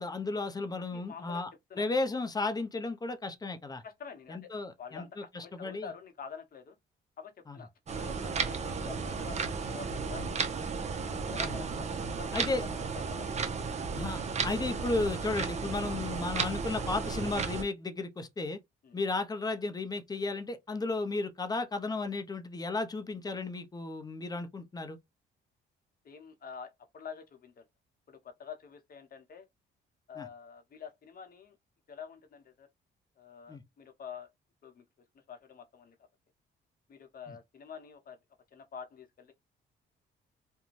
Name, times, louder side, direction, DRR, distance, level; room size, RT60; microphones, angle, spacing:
voice 1, 0.0-1.5 1.8-3.8 4.3-5.9 7.5-7.6 11.4-11.5 12.3-12.6 14.0-18.6 18.9-25.0 30.2-30.3 33.5-33.6 37.3-37.4, left 3 dB, 20° left, 0.5 m, -34 dB
voice 2, 0.9-1.4 1.7-1.9 3.8-4.5 4.8-6.8 7.2-10.6 11.0-12.4 12.8-13.6 18.8-19.0 26.0-27.6 28.1-29.5 30.1-31.5 31.9-32.7 33.2-34.3 34.6-34.8 35.3-35.9 36.9-38.2 38.5-39.3, left 6 dB, 50° left, 0.8 m, -47 dB
Clock Ticking, 7.9-17.6, right 5 dB, 35° right, 0.6 m, -34 dB
2.5 x 2.2 x 3.0 m
cardioid pair, 90°, 20 cm